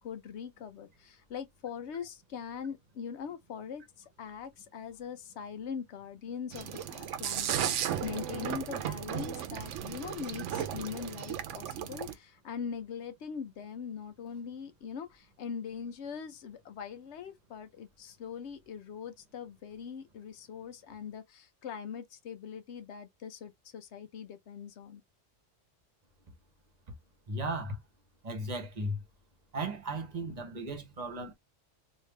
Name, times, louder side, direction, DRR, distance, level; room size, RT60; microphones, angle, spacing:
voice 1, 0.0-3.8 4.2-25.0, left 7 dB, 65° left, 0.9 m, -42 dB
sound 1, 6.5-12.1, right 9 dB, 75° right, 0.9 m, -35 dB
voice 2, 27.3-27.8 28.2-29.0 29.5-31.3, right 1 dB, 35° right, 0.9 m, -36 dB
3.4 x 2.7 x 3.1 m
omnidirectional pair, 1.3 m